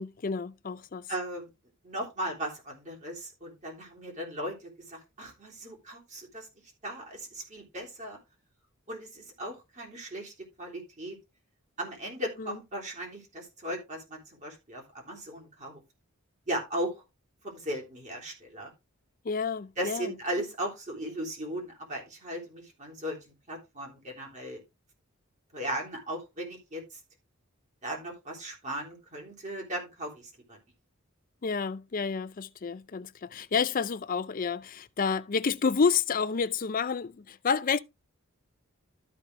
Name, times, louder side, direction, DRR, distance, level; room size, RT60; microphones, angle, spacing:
voice 1, 0.0-1.1 12.4-12.6 19.2-20.1 31.4-37.8, left 5 dB, 40° left, 0.5 m, -29 dB
voice 2, 1.1-1.5 1.8-6.5 6.8-8.2 8.9-10.3 10.6-11.2 11.8-15.8 16.5-17.0 17.4-18.7 19.8-24.6 25.5-27.0 27.8-30.6, right 1 dB, 35° right, 3.4 m, -37 dB
13.0 x 5.4 x 3.3 m
head